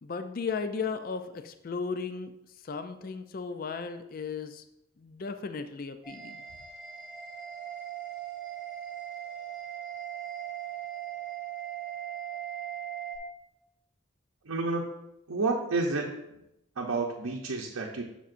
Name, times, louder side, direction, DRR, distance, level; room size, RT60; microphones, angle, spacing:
voice 1, 0.0-2.3 2.6-4.6 5.0-6.4, left 5 dB, 40° left, 9 dB, 0.4 m, -35 dB
sound 1, 6.0-13.2, right 10 dB, 5° right, 1.3 m, -39 dB
voice 2, 14.4-14.9 15.3-16.4 16.8-18.0, right 3 dB, 85° right, -1 dB, 0.7 m, -30 dB
7.4 x 6.8 x 2.6 m, 0.87 s
head